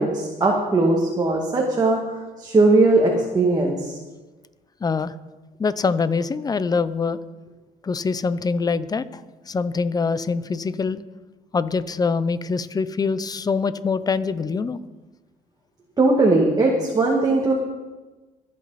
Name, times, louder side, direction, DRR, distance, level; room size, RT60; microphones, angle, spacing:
voice 1, 0.0-2.0 2.4-4.0 16.0-17.5, right 2 dB, 25° right, -1 dB, 2.1 m, -19 dB
voice 2, 4.8-5.1 5.6-7.2 7.8-9.2 9.5-11.0 11.5-14.8, left 4 dB, 20° left, 14 dB, 0.7 m, -24 dB
24.0 x 8.6 x 4.2 m, 1.2 s
cardioid pair, 110°, 17 cm